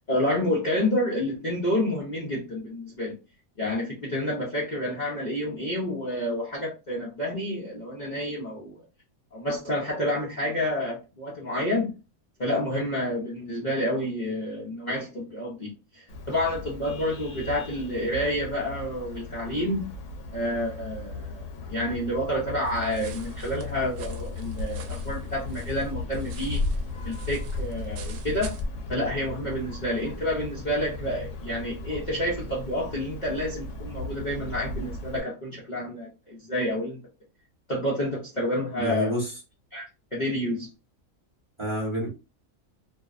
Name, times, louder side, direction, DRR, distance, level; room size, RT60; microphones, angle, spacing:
voice 1, 0.1-3.2 3.6-8.8 9.3-11.9 12.4-19.9 20.3-26.6 27.0-28.5 28.9-37.0 37.7-39.1 39.7-39.9 40.1-40.7, left 1 dB, 45° left, 0.6 m, -29 dB
Vehicle horn car horn honking, 16.1-35.2, left 3 dB, 70° left, 1.0 m, -38 dB
sound 1, 22.7-28.7, left 1 dB, 75° right, 1.0 m, -35 dB
voice 2, 38.8-39.4 41.6-42.1, equal, 25° right, 0.9 m, -28 dB
2.6 x 2.1 x 2.4 m
omnidirectional pair, 1.4 m